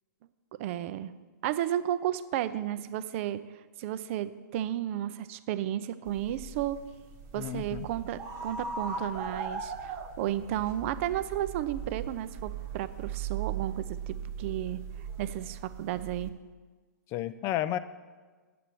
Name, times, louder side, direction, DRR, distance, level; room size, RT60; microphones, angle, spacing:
voice 1, 0.6-1.1 1.4-3.4 3.8-6.8 7.3-14.8 15.2-16.3, right 12 dB, 40° right, 14 dB, 0.5 m, -33 dB
sound 1, 6.1-16.3, right 6 dB, 25° right, 1.1 m, -39 dB
voice 2, 7.4-7.9 17.1-17.8, left 13 dB, 25° left, 13 dB, 0.4 m, -32 dB
8.5 x 6.8 x 7.7 m, 1.4 s
hypercardioid pair, 135°, 10 cm